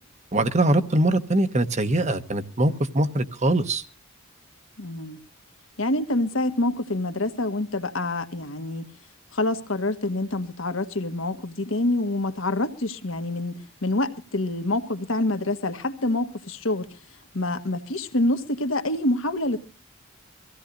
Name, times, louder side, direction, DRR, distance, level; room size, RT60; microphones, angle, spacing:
voice 1, 0.3-3.8, right 1 dB, 35° right, 1.0 m, -22 dB
voice 2, 4.8-5.2 5.8-8.8 9.3-17.0 17.3-19.6, left 2 dB, 70° left, 1.5 m, -26 dB
24.0 x 16.0 x 2.6 m
head